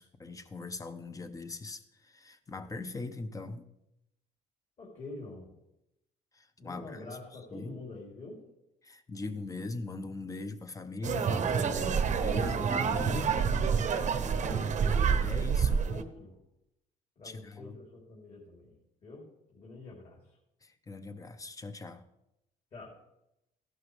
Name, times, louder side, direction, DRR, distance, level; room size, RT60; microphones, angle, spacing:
voice 1, 0.0-3.7 6.3-7.2 7.5-7.8 8.8-13.4 13.7-14.2 15.2-15.9 17.2-17.7 20.6-22.0, left 3 dB, 20° left, 10 dB, 0.8 m, -41 dB
voice 2, 4.8-5.5 6.6-8.4 14.2-14.7 15.9-16.4 17.2-18.8 19.0-19.3 19.5-20.2 22.7-23.0, left 2 dB, 40° left, -4 dB, 3.2 m, -46 dB
sound 1, 11.0-16.0, right 6 dB, 45° right, 0.9 m, -28 dB
14.5 x 11.5 x 3.3 m, 0.87 s
cardioid pair, 110°, 17 cm